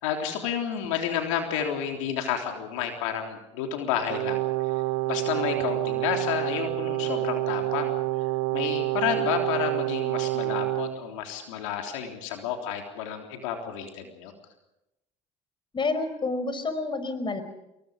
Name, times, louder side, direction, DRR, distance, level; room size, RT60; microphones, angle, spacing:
voice 1, 0.0-4.4 5.1-7.9 8.5-14.3, left 8 dB, 90° left, 3 dB, 3.5 m, -30 dB
Brass instrument, 4.1-11.0, right 20 dB, 85° right, 1.2 m, -28 dB
voice 2, 15.7-17.4, left 3 dB, 30° left, 11 dB, 4.9 m, -29 dB
28.0 x 22.5 x 5.2 m, 0.92 s
supercardioid pair, 80°, 16 cm